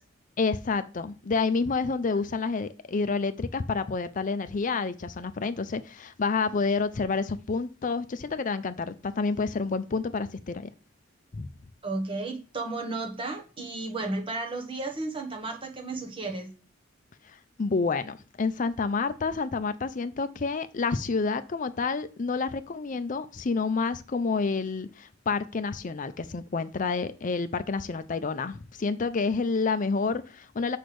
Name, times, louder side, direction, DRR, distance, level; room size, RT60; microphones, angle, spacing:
voice 1, 0.4-10.7 11.3-11.5 17.6-30.8, left 4 dB, 40° left, 0.5 m, -29 dB
voice 2, 11.8-16.5, right 2 dB, 25° right, 1.2 m, -33 dB
6.3 x 3.4 x 6.0 m
head